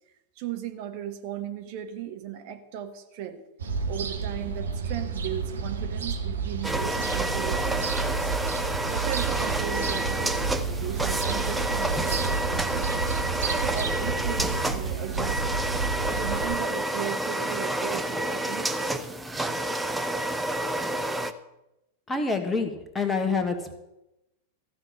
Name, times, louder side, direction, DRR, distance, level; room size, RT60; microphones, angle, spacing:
voice 1, 0.4-3.4 3.9-8.3 8.7-15.6 16.1-19.2, right 10 dB, 45° right, 6 dB, 1.2 m, -37 dB
sound 1, 3.6-16.6, right 5 dB, 70° right, 1.3 m, -30 dB
sound 2, 6.6-21.3, right 1 dB, 5° right, 0.7 m, -29 dB
voice 2, 22.1-23.7, left 4 dB, 10° left, 6 dB, 1.6 m, -27 dB
14.5 x 6.0 x 8.6 m, 0.93 s
figure-of-eight pair, 90°, 0 cm